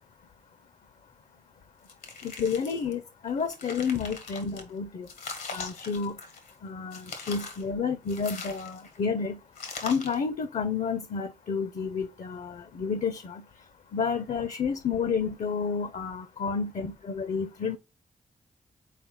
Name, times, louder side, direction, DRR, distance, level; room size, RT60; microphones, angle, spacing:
sound 1, 1.9-2.9 3.4-4.6 5.1-6.6 6.9-7.7 8.1-9.0 9.6-10.2, left 4 dB, 90° left, 1.7 m, -41 dB
voice 1, 2.2-5.1 5.5-6.2 6.6-9.4 9.8-13.4 13.9-17.8, left 5 dB, 60° left, 0.6 m, -30 dB
4.3 x 4.1 x 5.5 m
cardioid pair, 55°, 14 cm